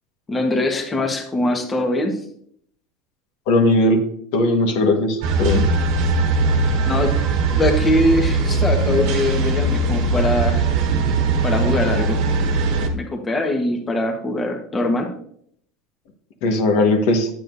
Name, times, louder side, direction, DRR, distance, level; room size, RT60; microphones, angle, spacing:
voice 1, 0.3-2.2 6.9-7.2 7.5-10.7 11.4-12.2 12.9-15.1, left 1 dB, 20° left, 3 dB, 1.4 m, -22 dB
voice 2, 3.5-4.1 4.3-5.7 16.4-17.3, left 2 dB, 70° left, 5 dB, 1.5 m, -18 dB
sound 1, 5.2-12.9, right 3 dB, 70° right, 1.2 m, -20 dB
8.8 x 8.2 x 2.7 m, 0.66 s
hypercardioid pair, 95°, 0 cm